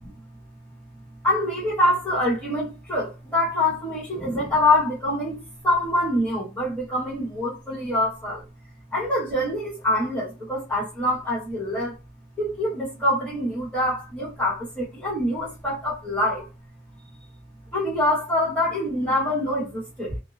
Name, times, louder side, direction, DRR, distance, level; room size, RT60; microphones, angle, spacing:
voice 1, 0.9-8.4 8.9-11.9 12.4-16.5 17.7-20.2, left 1 dB, 5° left, 1.2 m, -25 dB
2.7 x 2.0 x 2.4 m
head